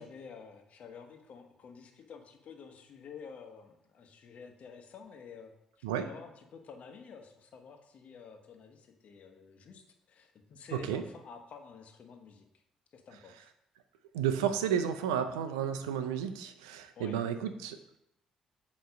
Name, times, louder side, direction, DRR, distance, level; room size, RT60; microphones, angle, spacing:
voice 1, 0.0-5.5 5.8-12.4 12.9-13.5 16.9-17.2, left 6 dB, 60° left, 5 dB, 1.1 m, -50 dB
voice 2, 10.7-11.0 14.1-18.0, right 8 dB, 85° right, 9 dB, 0.5 m, -32 dB
7.9 x 3.1 x 5.2 m, 0.81 s
hypercardioid pair, 45°, 3 cm